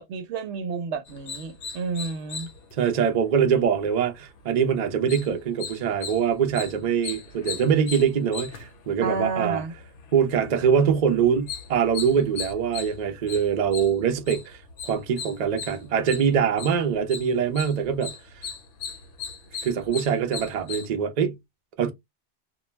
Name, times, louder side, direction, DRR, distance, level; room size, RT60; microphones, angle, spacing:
voice 1, 0.0-2.5 9.0-9.7, right 4 dB, 85° right, 0.9 m, -30 dB
sound 1, 1.1-20.9, left 6 dB, 65° left, 0.8 m, -39 dB
voice 2, 2.7-9.6 10.1-14.6 14.8-18.4 19.6-21.4 21.8-21.9, right 7 dB, 50° right, 0.5 m, -23 dB
2.2 x 2.1 x 3.0 m
omnidirectional pair, 1.1 m